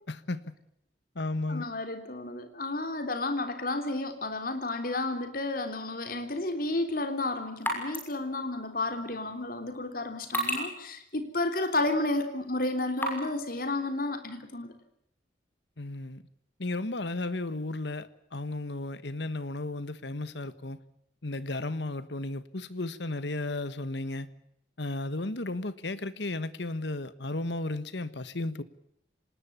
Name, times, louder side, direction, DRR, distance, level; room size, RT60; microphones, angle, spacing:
voice 1, 0.1-0.5 1.1-1.7 15.8-16.2 16.6-20.8 21.2-24.3 24.8-28.6, left 2 dB, 70° left, 1.4 m, -34 dB
voice 2, 1.5-14.7, left 2 dB, 50° left, 3.6 m, -32 dB
sound 1, 6.6-13.4, equal, 10° left, 6.3 m, -38 dB
26.5 x 19.5 x 6.9 m
head